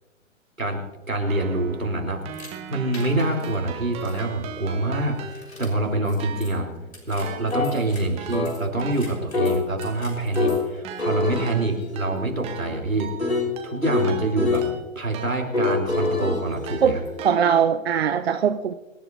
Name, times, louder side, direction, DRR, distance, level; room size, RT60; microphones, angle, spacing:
voice 1, 0.6-6.7 7.1-13.1 13.6-14.6 14.9-17.0, right 2 dB, 85° right, 0 dB, 3.4 m, -26 dB
Keyboard (musical), 1.3-5.8 6.2-16.1 16.7-17.9, right 6 dB, 15° right, 1.1 m, -39 dB
sound 1, 2.3-2.5 2.9-3.5 4.0-4.1 5.3-5.7 6.1-6.2 6.4-6.5 6.9-8.0 8.3-10.7 11.0-14.7 15.5-17.3, left 3 dB, 85° left, 3.6 m, -27 dB
voice 2, 16.8-18.7, right 7 dB, 50° right, 9 dB, 0.7 m, -21 dB
25.0 x 11.5 x 2.6 m, 1.2 s
figure-of-eight pair, 125°, 39 cm